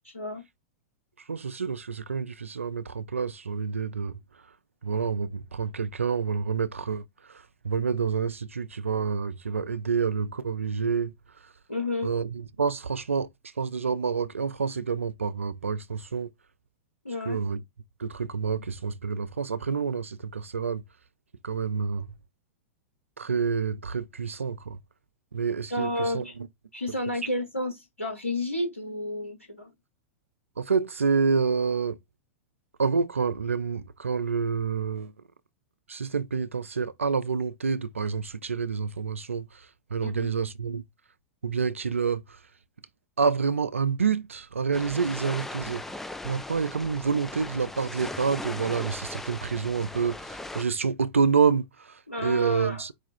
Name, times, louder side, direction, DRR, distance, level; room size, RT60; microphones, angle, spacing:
voice 1, 0.0-0.4 11.7-12.1 17.0-17.4 25.7-26.4 26.7-29.7 40.0-40.3 52.1-52.8, left 1 dB, 85° left, 1.1 m, -31 dB
voice 2, 1.3-4.2 4.8-7.0 7.3-11.1 12.0-13.3 13.6-16.3 17.2-17.6 18.0-20.8 21.4-22.1 23.2-24.8 25.3-26.3 30.6-32.0 32.8-35.1 35.9-40.8 41.4-42.4 43.2-46.0 46.2-52.9, right 5 dB, 80° right, 0.4 m, -28 dB
sound 1, 44.7-50.6, left 2 dB, 5° left, 0.3 m, -38 dB
4.9 x 2.3 x 4.2 m
figure-of-eight pair, 100°, 7 cm